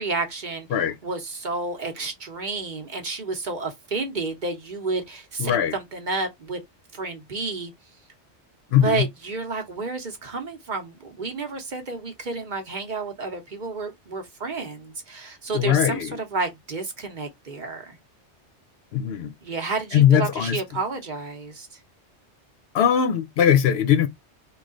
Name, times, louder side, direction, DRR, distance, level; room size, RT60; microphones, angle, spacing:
voice 1, 0.0-0.7 1.0-6.6 6.9-7.7 8.8-18.0 19.4-21.7, right 3 dB, 50° right, 0.8 m, -30 dB
voice 2, 5.4-5.7 8.7-9.0 15.5-16.2 18.9-19.3 19.9-20.6 22.7-24.1, left 9 dB, 70° left, 0.8 m, -20 dB
3.2 x 2.3 x 3.6 m
omnidirectional pair, 1.2 m